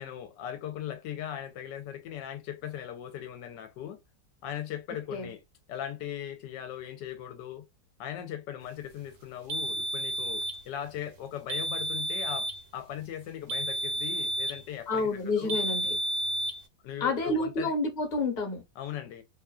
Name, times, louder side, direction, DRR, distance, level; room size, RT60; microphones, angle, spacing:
voice 1, 0.0-4.0 4.4-5.4 5.7-7.6 8.0-15.6 16.8-17.7 18.8-19.2, left 10 dB, 90° left, 1.3 m, -39 dB
sound 1, 9.5-10.6 11.5-12.6 13.5-14.6 15.5-16.6, right 1 dB, 70° right, 0.9 m, -31 dB
voice 2, 14.9-16.0 17.0-18.6, left 2 dB, 30° left, 1.0 m, -29 dB
2.9 x 2.4 x 2.2 m
omnidirectional pair, 1.9 m